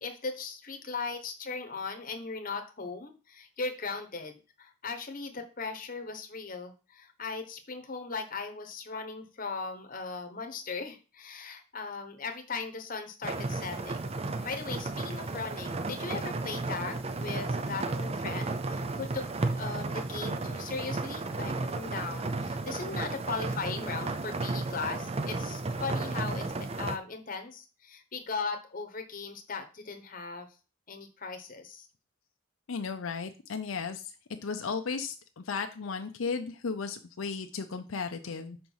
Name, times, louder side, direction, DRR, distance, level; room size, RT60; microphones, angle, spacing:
voice 1, 0.0-14.0 14.4-30.5 30.9-31.9, left 4 dB, 40° left, 6 dB, 1.0 m, -38 dB
sound 1, 13.2-27.0, right 3 dB, 30° right, 0.5 m, -33 dB
voice 2, 32.7-34.1 34.4-38.6, left 5 dB, 80° left, 6 dB, 0.6 m, -35 dB
5.1 x 4.5 x 5.5 m, 0.34 s
head